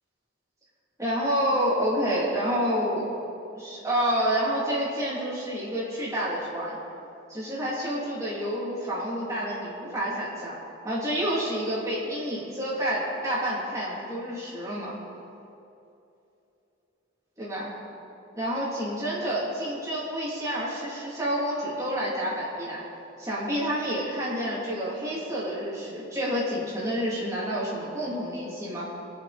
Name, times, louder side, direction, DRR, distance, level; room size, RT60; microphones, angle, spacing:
voice 1, 1.0-3.1 3.6-6.8 7.3-10.6 10.8-15.0 17.4-17.7 18.4-22.8 23.2-28.9, equal, 15° right, -7 dB, 3.0 m, -29 dB
20.0 x 6.7 x 4.3 m, 2.8 s
head